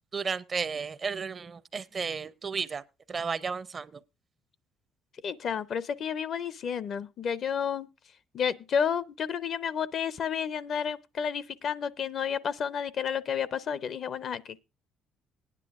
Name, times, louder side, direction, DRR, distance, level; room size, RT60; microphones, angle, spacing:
voice 1, 0.1-2.8 3.1-4.0, right 5 dB, 35° right, 0.5 m, -33 dB
voice 2, 5.2-7.9 8.3-14.6, left 7 dB, 55° left, 0.6 m, -31 dB
19.5 x 9.9 x 2.4 m
cardioid pair, 95°, 0 cm